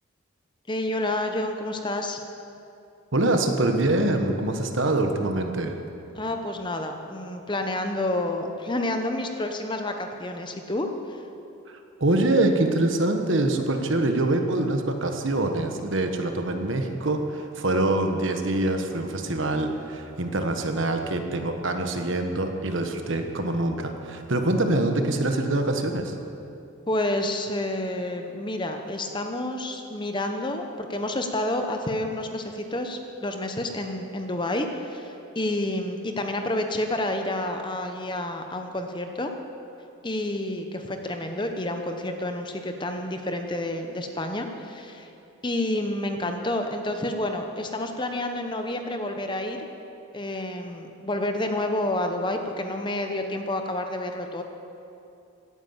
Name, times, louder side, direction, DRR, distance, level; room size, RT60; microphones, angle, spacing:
voice 1, 0.7-2.2 6.2-11.2 26.9-39.3 40.0-45.1 45.4-49.6 50.1-54.4, left 1 dB, 20° left, 5 dB, 0.9 m, -29 dB
voice 2, 3.1-5.8 12.0-26.1, right 2 dB, 60° right, 5 dB, 1.3 m, -24 dB
17.0 x 9.5 x 7.2 m, 2.7 s
head